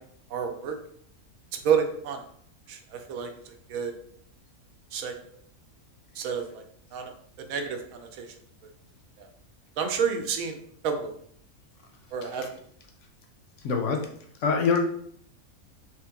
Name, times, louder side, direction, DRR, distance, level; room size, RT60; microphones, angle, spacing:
voice 1, 0.3-0.8 1.6-2.2 2.7-3.9 4.9-5.1 6.2-6.6 6.9-7.1 7.5-8.3 9.8-10.6 10.8-11.1 12.1-12.5, right 7 dB, 75° right, 5 dB, 1.0 m, -29 dB
voice 2, 13.6-14.1 14.4-14.8, left 5 dB, 65° left, 3 dB, 0.8 m, -24 dB
3.2 x 3.0 x 3.5 m, 0.64 s
omnidirectional pair, 1.5 m